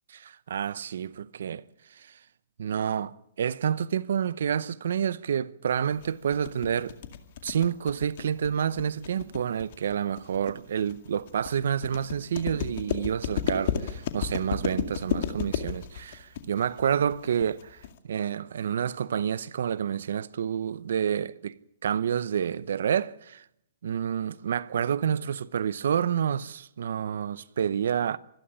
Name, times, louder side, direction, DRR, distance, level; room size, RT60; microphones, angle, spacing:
voice 1, 0.2-1.6 2.0-2.1 2.6-6.9 7.4-23.4 23.8-28.2, right 8 dB, 75° right, 0.8 m, -29 dB
sound 1, 6.0-18.0, left 9 dB, 50° left, 2.2 m, -33 dB
25.5 x 11.5 x 10.0 m
hypercardioid pair, 150°, 0 cm